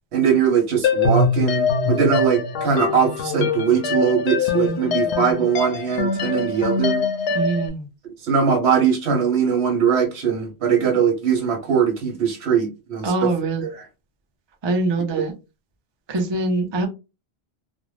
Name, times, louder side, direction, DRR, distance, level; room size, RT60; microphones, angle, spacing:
voice 1, 0.1-7.0 8.2-13.3 13.6-13.9 15.1-15.3, right 7 dB, 75° right, 1.1 m, -21 dB
sound 1, 0.8-7.7, left 4 dB, 80° left, 0.8 m, -23 dB
voice 2, 7.3-7.8 13.0-13.6 14.6-15.3 16.1-16.9, right 2 dB, 35° right, 0.5 m, -23 dB
2.5 x 2.1 x 3.1 m
omnidirectional pair, 1.1 m